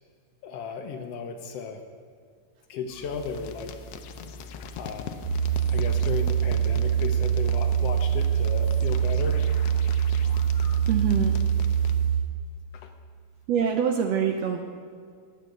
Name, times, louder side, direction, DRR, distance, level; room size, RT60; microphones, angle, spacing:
voice 1, 0.4-1.8 2.7-3.8 4.2-4.3 4.7-5.2 5.7-9.5 12.7-12.9, left 5 dB, 70° left, 5 dB, 1.5 m, -35 dB
sound 1, 2.9-12.3, left 4 dB, 85° left, 1.3 m, -41 dB
sound 2, 5.2-12.2, right 8 dB, 25° left, 1.1 m, -24 dB
voice 2, 10.9-11.4 13.5-14.6, right 7 dB, 75° right, 5 dB, 1.6 m, -25 dB
10.5 x 8.9 x 7.8 m, 2.1 s
omnidirectional pair, 3.5 m